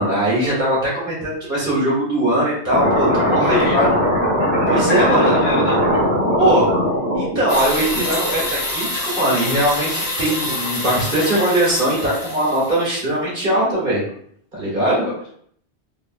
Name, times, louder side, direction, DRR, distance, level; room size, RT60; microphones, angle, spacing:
voice 1, 0.0-4.0 4.7-5.3 6.4-6.7 7.1-14.0 14.5-15.0, right 1 dB, 50° right, -7 dB, 1.6 m, -20 dB
sound 1, 2.7-8.5, equal, 35° right, 1.2 m, -19 dB
voice 2, 4.8-5.9 15.0-15.3, left 2 dB, 70° left, -3 dB, 1.1 m, -25 dB
sound 2, 7.5-12.9, left 1 dB, 35° left, 0.4 m, -26 dB
3.3 x 2.4 x 2.5 m, 0.65 s
omnidirectional pair, 1.1 m